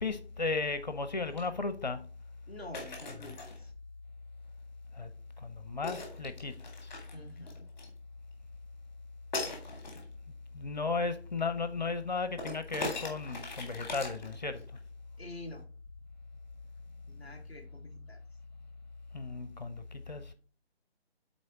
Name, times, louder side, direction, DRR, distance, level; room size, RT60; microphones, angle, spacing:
voice 1, 0.0-2.0 4.9-5.1 5.4-6.9 10.5-14.6 19.1-20.3, left 3 dB, 40° left, 0.6 m, -35 dB
sound 1, 1.3-1.5 2.7-3.6 5.8-7.9 9.3-10.0 12.4-14.8, left 2 dB, 10° left, 1.3 m, -40 dB
voice 2, 2.5-3.7 7.1-7.7 15.2-15.7 17.1-18.2, left 1 dB, 10° right, 0.6 m, -48 dB
6.3 x 4.1 x 5.9 m
figure-of-eight pair, 150°, 32 cm